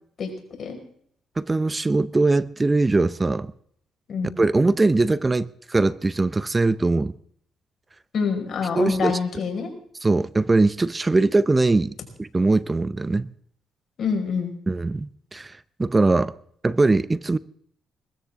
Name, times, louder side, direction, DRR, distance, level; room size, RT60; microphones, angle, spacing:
voice 1, 1.4-3.5 4.4-7.1 8.8-9.2 10.0-11.9 12.2-13.3 14.7-16.3 16.6-17.4, right 3 dB, 20° right, 0.6 m, -21 dB
voice 2, 8.1-9.7 14.0-14.5, left 5 dB, 55° left, 5.2 m, -26 dB
21.5 x 14.0 x 3.7 m
cardioid pair, 90°, 0 cm